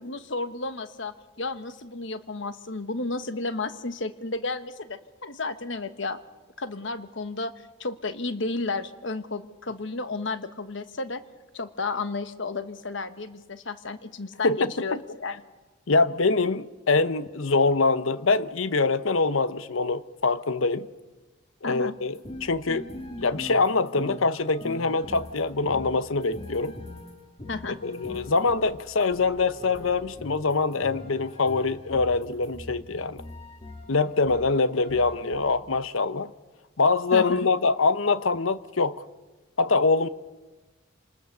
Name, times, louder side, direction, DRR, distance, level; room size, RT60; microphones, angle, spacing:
voice 1, 0.0-6.2 6.6-11.2 11.5-15.4 21.6-21.9 27.5-27.8 37.1-37.5, left 3 dB, 65° left, 1.3 m, -32 dB
voice 2, 14.4-15.0 15.9-20.9 21.6-22.8 23.2-26.8 27.8-33.2 33.9-36.3 36.8-39.0 39.6-40.1, left 3 dB, 85° left, 0.9 m, -24 dB
sound 1, 22.1-35.5, left 1 dB, 30° left, 2.1 m, -42 dB
28.0 x 19.5 x 6.7 m
head